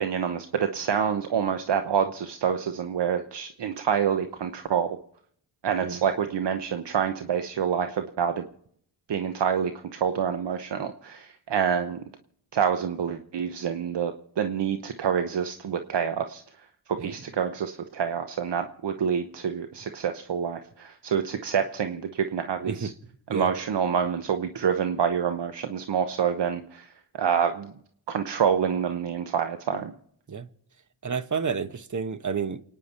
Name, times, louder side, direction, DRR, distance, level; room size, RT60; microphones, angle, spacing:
voice 1, 0.0-5.0 5.6-8.5 9.1-12.0 12.5-16.4 16.9-22.9 23.3-26.9 27.1-27.7 28.1-29.9, right 7 dB, 75° right, 1.0 m, -27 dB
voice 2, 22.6-23.5 30.3-30.5 31.0-32.6, right 5 dB, 45° right, 1.1 m, -31 dB
29.0 x 9.9 x 4.3 m
cardioid pair, 65°, 43 cm